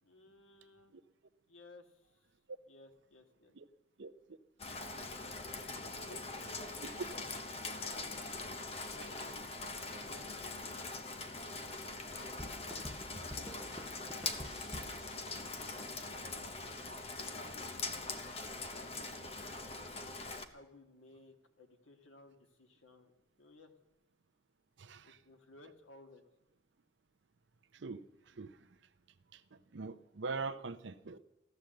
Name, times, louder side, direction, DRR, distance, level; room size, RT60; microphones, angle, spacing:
voice 1, 0.0-0.9 1.5-2.1 2.7-3.5 5.2-7.3 7.7-8.2 8.9-10.8 12.0-13.7 14.0-14.5 15.1-16.5 17.3-19.9 20.5-23.1 23.4-23.7 25.0-26.2, left 2 dB, 90° left, 5 dB, 1.7 m, -59 dB
Rain, 4.6-20.4, left 3 dB, 30° left, 0.9 m, -42 dB
sound 1, 12.4-16.0, equal, 5° right, 0.7 m, -49 dB
voice 2, 24.8-25.2 27.7-28.7 29.3-31.2, right 4 dB, 70° right, 11 dB, 0.6 m, -43 dB
14.5 x 12.0 x 7.7 m, 0.94 s
head